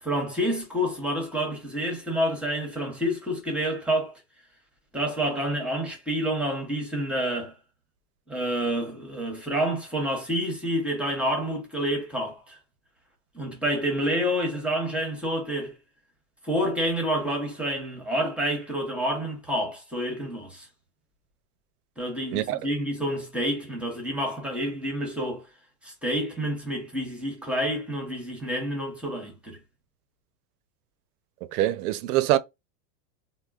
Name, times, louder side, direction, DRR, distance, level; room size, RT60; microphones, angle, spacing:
voice 1, 0.0-4.2 4.9-7.5 8.3-12.6 13.3-15.8 16.4-20.7 22.0-25.5 25.8-29.6, equal, 5° right, 0.8 m, -28 dB
voice 2, 31.5-32.4, right 14 dB, 70° right, 0.6 m, -24 dB
3.6 x 2.1 x 2.3 m
supercardioid pair, 135°, 47 cm